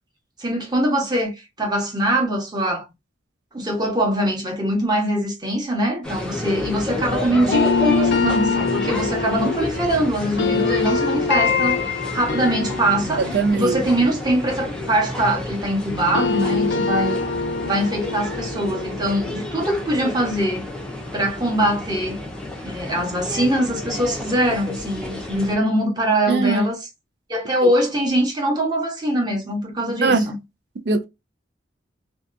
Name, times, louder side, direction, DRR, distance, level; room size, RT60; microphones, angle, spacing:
voice 1, 0.4-2.9 3.5-17.2 17.6-20.6 21.1-22.2 22.6-26.8 27.3-30.4, right 1 dB, 25° right, 0.8 m, -22 dB
sound 1, 6.0-25.5, left 1 dB, 5° left, 0.6 m, -31 dB
sound 2, 7.5-15.6 15.9-20.8, left 4 dB, 70° left, 0.4 m, -25 dB
voice 2, 13.2-13.8 26.3-26.7 27.6-27.7 30.0-30.3 30.9-31.0, right 4 dB, 65° right, 0.4 m, -20 dB
2.7 x 2.3 x 2.4 m
head